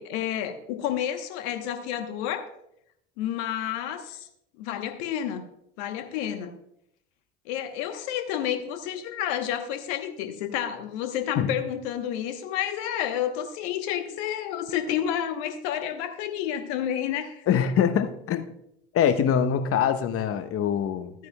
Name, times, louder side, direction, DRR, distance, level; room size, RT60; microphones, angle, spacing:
voice 1, 0.0-2.5 3.2-4.3 4.6-5.4 5.8-6.5 7.4-17.5 21.2-21.3, left 10 dB, 65° left, 7 dB, 1.1 m, -30 dB
voice 2, 17.5-18.5 18.9-21.1, left 8 dB, 40° left, 10 dB, 0.9 m, -23 dB
13.5 x 9.3 x 2.3 m, 0.77 s
hypercardioid pair, 70°, 36 cm